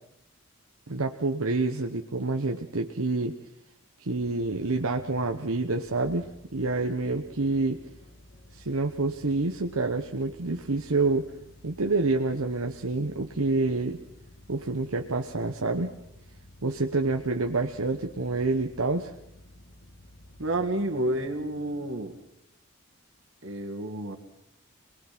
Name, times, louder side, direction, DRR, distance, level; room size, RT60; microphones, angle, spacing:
voice 1, 0.9-3.4 4.0-6.3 6.5-7.8 8.5-11.3 11.6-14.0 14.5-15.9 16.6-19.1, right 3 dB, 80° right, 4 dB, 1.1 m, -27 dB
sound 1, 4.1-21.9, left 1 dB, 60° left, 2.7 m, -52 dB
voice 2, 20.4-22.2 23.4-24.2, right 1 dB, 65° right, 5 dB, 2.2 m, -30 dB
26.5 x 21.0 x 6.0 m, 0.78 s
head